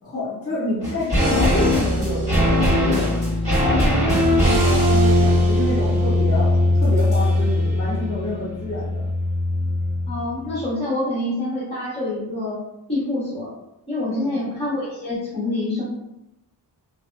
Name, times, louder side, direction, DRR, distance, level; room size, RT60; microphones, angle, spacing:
voice 1, 0.0-3.1 3.6-9.0 14.0-14.4, left 1 dB, 35° left, -7 dB, 1.3 m, -28 dB
sound 1, 0.8-10.2 10.4-10.5, left 1 dB, 15° right, 1.5 m, -19 dB
voice 2, 4.2-4.8 10.1-12.6 12.9-13.5 13.9-15.8, left 2 dB, 15° left, -9 dB, 1.2 m, -27 dB
2.6 x 2.3 x 2.2 m, 0.87 s
wide cardioid pair, 160°, 41 cm